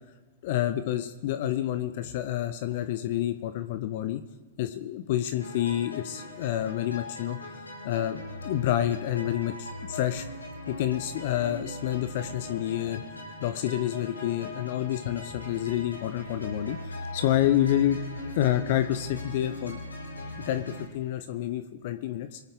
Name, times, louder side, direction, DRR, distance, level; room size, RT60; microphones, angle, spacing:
voice 1, 0.4-4.2 4.6-10.3 10.7-13.0 13.4-18.0 18.3-19.8 20.4-22.4, left 12 dB, 50° left, 10 dB, 0.7 m, -28 dB
sound 1, 5.4-20.8, left 2 dB, 80° left, 4.0 m, -40 dB
25.5 x 9.4 x 3.6 m, 1.4 s
figure-of-eight pair, 100°, 0 cm